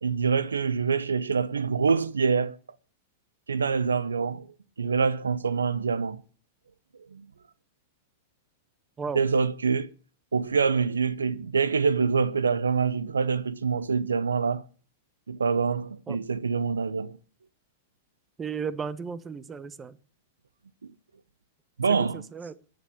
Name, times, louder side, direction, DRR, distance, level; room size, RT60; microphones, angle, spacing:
voice 1, 0.0-2.6 3.5-4.5 4.8-6.2 7.1-7.3 9.1-9.9 10.3-14.6 15.3-17.2 21.8-22.2, right 5 dB, 85° right, 0.6 m, -25 dB
voice 2, 18.4-20.0 21.9-22.5, right 6 dB, 20° right, 1.1 m, -35 dB
11.0 x 9.6 x 8.6 m
hypercardioid pair, 100°, 0 cm